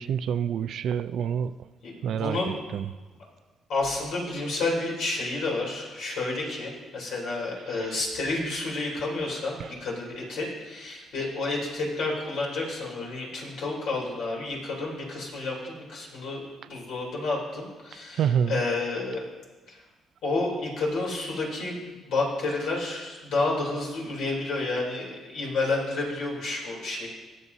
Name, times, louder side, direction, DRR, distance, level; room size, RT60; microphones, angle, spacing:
voice 1, 0.0-1.5 2.0-2.4 2.7-2.8 18.2-18.6, right 8 dB, 70° right, 12 dB, 0.4 m, -26 dB
voice 2, 1.8-2.6 3.7-19.2 19.7-19.8 20.2-21.8 22.0-27.1, left 2 dB, 80° left, -2 dB, 3.3 m, -30 dB
20.5 x 7.2 x 2.8 m, 1.3 s
cardioid pair, 90°, 0 cm